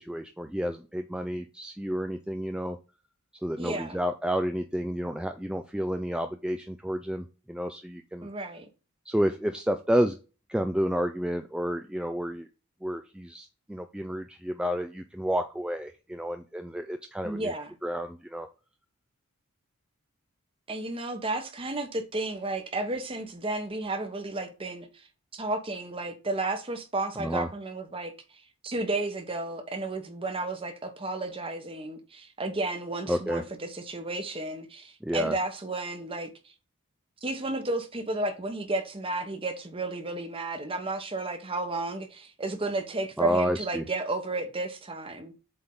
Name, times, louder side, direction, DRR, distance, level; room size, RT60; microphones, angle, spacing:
voice 1, 0.0-2.8 3.4-8.3 9.1-10.2 10.5-12.5 12.8-17.5 17.8-18.5 27.2-27.5 33.1-33.4 35.0-35.4 43.2-43.9, equal, 5° right, 0.3 m, -30 dB
voice 2, 3.6-4.0 8.2-8.7 17.2-17.7 20.7-25.1 25.3-28.1 28.6-36.5 37.2-45.3, right 2 dB, 25° right, 1.0 m, -33 dB
7.9 x 3.6 x 3.8 m
head